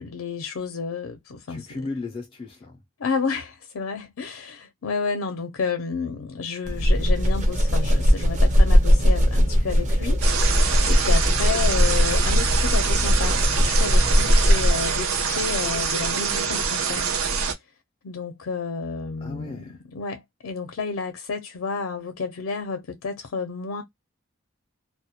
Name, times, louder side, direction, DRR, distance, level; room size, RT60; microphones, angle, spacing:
voice 1, 0.0-1.7 3.0-17.1 18.0-23.8, left 5 dB, 85° left, 0.5 m, -31 dB
voice 2, 1.5-2.8 14.2-14.6 19.2-19.8, left 3 dB, 25° left, 0.4 m, -36 dB
sound 1, 6.7-14.9, equal, 35° right, 0.5 m, -19 dB
sound 2, 10.2-17.5, right 5 dB, 85° right, 0.6 m, -25 dB
2.2 x 2.1 x 2.7 m
head